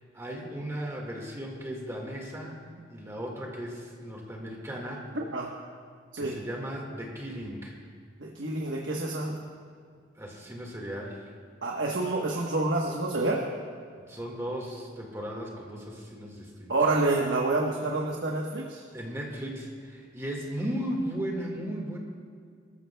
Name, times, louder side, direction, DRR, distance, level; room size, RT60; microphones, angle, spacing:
voice 1, 0.1-2.6 2.9-5.0 6.2-7.8 10.2-11.2 14.1-16.7 18.9-22.0, equal, 15° right, -1 dB, 1.8 m, -36 dB
voice 2, 5.1-5.5 6.1-6.4 8.2-9.4 11.6-13.5 16.7-18.8, right 2 dB, 80° right, -1 dB, 1.2 m, -28 dB
24.5 x 14.0 x 2.3 m, 2.1 s
head